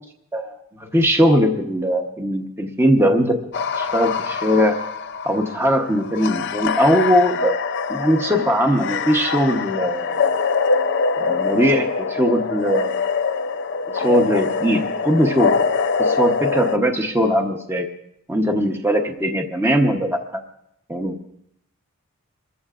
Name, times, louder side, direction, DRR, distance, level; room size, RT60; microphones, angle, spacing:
voice 1, 0.3-3.4 3.8-4.8 5.2-7.5 7.9-10.1 11.2-13.0 13.9-15.5 16.0-17.9 18.3-20.4 20.9-21.3, equal, 10° right, 3 dB, 0.9 m, -20 dB
sound 1, 3.5-16.8, left 5 dB, 50° left, 0.5 m, -24 dB
28.0 x 14.0 x 2.5 m, 0.77 s
head